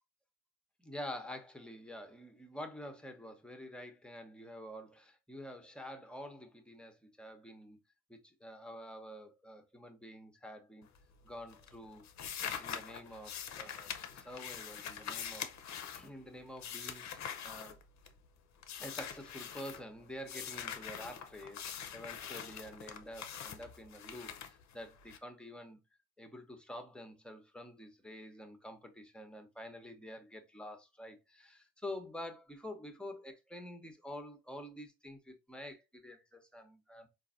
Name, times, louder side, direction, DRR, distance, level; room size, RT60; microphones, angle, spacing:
voice 1, 0.8-7.8 8.1-10.9 11.2-15.5 15.9-17.8 18.8-25.8 26.2-37.1, left 1 dB, ahead, 0.9 m, -48 dB
sound 1, 10.8-11.3 11.5-18.3 18.6-19.8 20.3-25.2, left 8 dB, 45° left, 0.6 m, -44 dB
3.8 x 2.6 x 2.5 m
hypercardioid pair, 55°, 40 cm